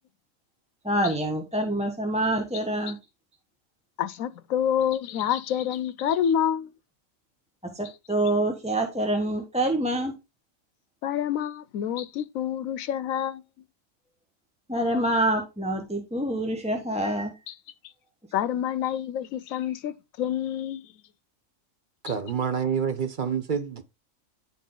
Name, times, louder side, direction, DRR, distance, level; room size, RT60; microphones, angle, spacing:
voice 1, 0.8-3.0 7.6-10.1 14.7-17.3, right 1 dB, 5° right, 0.9 m, -26 dB
voice 2, 4.0-6.7 11.0-13.4 17.5-17.6 18.3-20.9 22.1-22.2, left 9 dB, 90° left, 1.1 m, -28 dB
voice 3, 22.0-23.8, right 7 dB, 45° right, 0.9 m, -27 dB
10.0 x 4.2 x 3.8 m
omnidirectional pair, 1.4 m